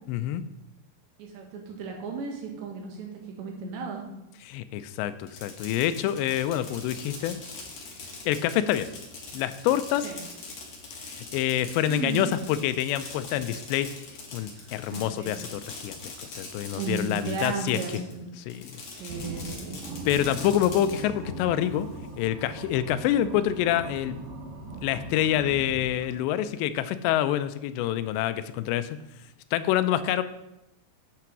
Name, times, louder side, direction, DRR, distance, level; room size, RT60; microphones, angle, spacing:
voice 1, 0.1-0.4 4.4-7.4 8.3-8.9 9.3-10.1 11.3-14.0 14.3-17.8 18.5-18.8 20.1-21.9 22.2-24.2 24.8-28.9 29.5-30.2, left 11 dB, 85° left, 12 dB, 2.8 m, -26 dB
voice 2, 1.2-3.1 3.4-4.0 10.0-10.2 11.9-12.2 14.5-15.3 16.8-18.3 19.0-19.8, right 5 dB, 85° right, 1 dB, 3.9 m, -34 dB
Fireworks, 5.2-18.1 18.5-21.0, left 4 dB, 50° left, 2.2 m, -42 dB
sound 1, 19.1-26.3, right 2 dB, 60° right, 3.2 m, -40 dB
8.6 x 5.9 x 6.1 m, 0.87 s
omnidirectional pair, 4.9 m